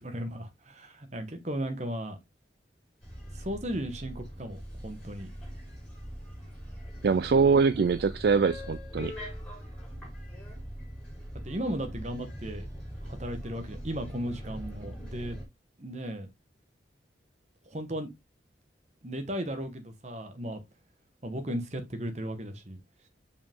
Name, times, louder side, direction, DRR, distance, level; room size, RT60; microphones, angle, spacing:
voice 1, 0.0-2.2 3.3-5.3 11.4-12.7 13.0-15.4 15.8-16.3 17.7-18.1 19.0-20.6 21.2-22.8, equal, 40° right, 1.2 m, -36 dB
sound 1, 3.0-15.4, equal, 5° left, 3.6 m, -42 dB
voice 2, 7.0-9.1, right 5 dB, 60° right, 0.3 m, -23 dB
5.2 x 5.1 x 3.5 m
head